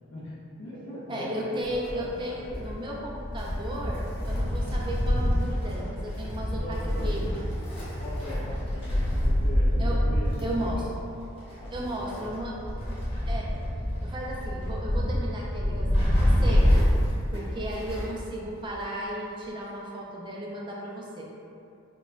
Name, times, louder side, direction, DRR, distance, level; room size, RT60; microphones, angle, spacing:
voice 1, 0.1-2.9 3.7-3.8 6.5-7.3 7.9-10.7 11.6-12.5, left 1 dB, 55° left, -7 dB, 0.4 m, -41 dB
voice 2, 1.1-7.6 9.8-10.0 10.4-10.9 11.7-12.6 13.3-13.5 14.0-16.7 17.3-21.2, equal, 20° right, -4 dB, 0.4 m, -35 dB
Wind, 1.6-18.2 18.5-18.6 19.6-19.7, equal, 25° left, 0.8 m, -27 dB
4.8 x 2.2 x 2.4 m, 2.7 s
head